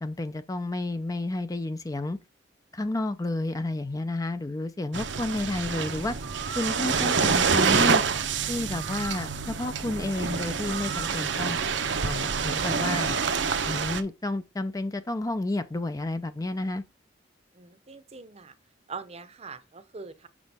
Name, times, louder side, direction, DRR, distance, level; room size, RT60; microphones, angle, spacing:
voice 1, 0.0-2.2 2.7-6.2 6.6-8.0 8.5-11.6 12.0-13.2 13.6-16.8, left 2 dB, 20° left, 0.4 m, -31 dB
sound 1, 4.9-14.0, right 5 dB, 70° right, 0.8 m, -27 dB
voice 2, 17.5-18.5 18.9-20.3, right 4 dB, 35° right, 0.7 m, -42 dB
6.4 x 6.1 x 3.5 m
head